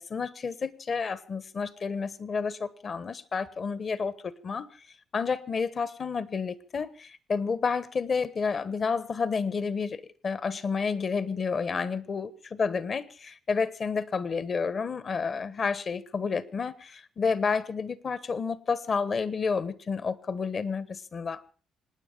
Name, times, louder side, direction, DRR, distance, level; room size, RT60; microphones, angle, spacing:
voice 1, 0.0-4.8 5.1-21.4, left 5 dB, 45° left, 1.2 m, -30 dB
26.5 x 9.7 x 5.3 m
cardioid pair, 90°, 0 cm